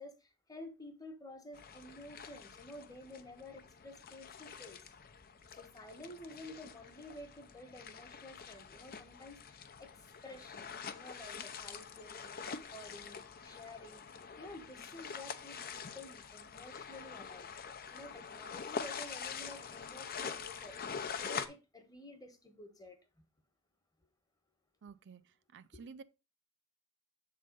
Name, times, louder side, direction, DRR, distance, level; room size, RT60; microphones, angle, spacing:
voice 1, 0.0-4.8 5.5-14.0 14.4-17.5 17.9-23.0 25.7-25.8, left 1 dB, 15° left, 1.3 m, -51 dB
sound 1, 1.5-21.5, left 6 dB, 45° left, 0.7 m, -45 dB
voice 2, 24.8-26.0, right 5 dB, 55° right, 0.4 m, -52 dB
7.6 x 3.7 x 5.2 m
head